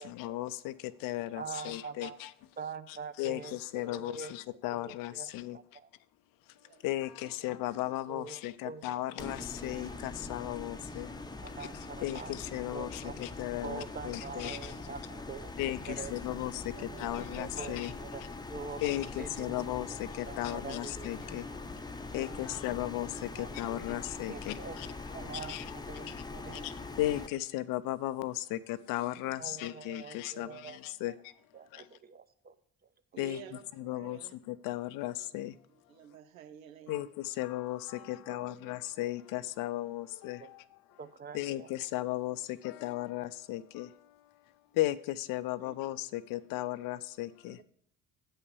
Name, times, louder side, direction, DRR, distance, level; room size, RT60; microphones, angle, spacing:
voice 1, 0.0-2.3 2.9-5.6 6.8-11.1 11.6-11.7 12.0-14.7 15.6-17.9 18.8-21.5 22.1-31.3 31.7-31.9 33.2-35.5 36.9-40.8 41.3-44.2 44.7-47.6, left 15 dB, 55° left, 0.6 m, -36 dB
voice 2, 1.4-2.2 2.6-4.3 4.7-5.9 8.1-8.8 9.2-9.7 11.4-12.3 12.7-13.1 13.6-15.6 15.9-16.2 17.5-19.6 19.9-20.0 20.3-21.1 21.5-21.6 23.4-23.5 24.3-24.8 25.1-25.5 25.9-26.1 26.3-26.7 29.4-30.8 31.1-31.2 31.5-32.6 33.3-33.4 40.4-40.5 41.0-41.7, right 5 dB, 25° right, 0.8 m, -45 dB
sound 1, 9.2-27.3, left 3 dB, 10° left, 0.8 m, -43 dB
voice 3, 16.8-17.8 22.0-22.6 23.7-24.0 24.8-24.9 26.4-26.7 29.2-29.3 33.1-34.3 35.0-35.1 35.9-37.1 37.9-38.7 45.6-45.7 47.5-47.6, right 9 dB, 80° right, 0.7 m, -51 dB
8.1 x 5.6 x 6.9 m
figure-of-eight pair, 50°, 40 cm